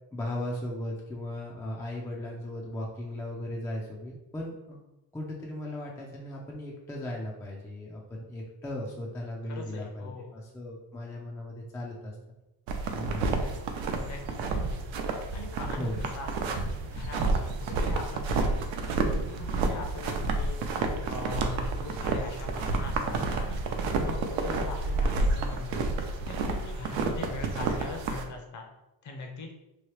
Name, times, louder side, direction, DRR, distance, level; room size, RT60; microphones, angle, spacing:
voice 1, 0.1-4.8 5.1-12.2 13.0-13.4 15.8-16.0, left 1 dB, 5° left, -2 dB, 0.4 m, -37 dB
voice 2, 9.5-10.4 13.3-13.6 14.0-14.8 15.3-18.7 19.2-20.6 21.0-25.9 26.2-28.6 29.0-29.5, left 3 dB, 40° left, 2 dB, 0.7 m, -41 dB
sound 1, 12.7-28.2, right 3 dB, 70° right, 0.6 m, -30 dB
3.0 x 2.7 x 3.1 m, 0.94 s
cardioid pair, 120°, 47 cm